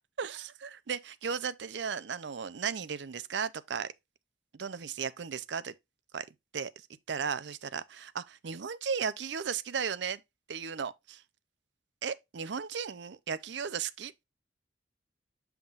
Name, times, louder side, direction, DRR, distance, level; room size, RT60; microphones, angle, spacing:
voice 1, 0.2-3.9 4.5-5.7 6.1-6.3 6.5-10.2 10.5-11.2 12.0-14.2, right 6 dB, 70° right, 0.5 m, -35 dB
7.2 x 5.8 x 2.4 m
head